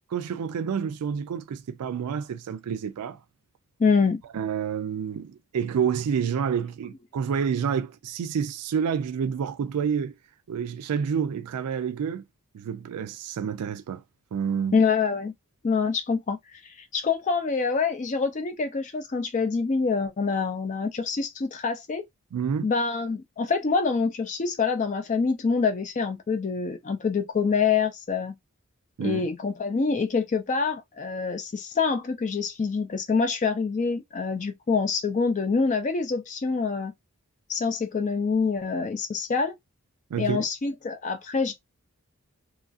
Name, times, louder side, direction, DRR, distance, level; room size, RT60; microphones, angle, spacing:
voice 1, 0.1-3.2 4.3-10.1 10.5-12.2 12.5-14.0 14.3-14.8 22.3-22.7 29.0-29.3 40.1-40.4, right 7 dB, 90° right, 0.4 m, -28 dB
voice 2, 3.8-4.2 14.7-15.3 15.6-22.1 22.6-28.4 29.0-36.9 37.5-39.6 40.2-41.5, left 5 dB, 35° left, 0.4 m, -26 dB
3.0 x 2.4 x 2.4 m
head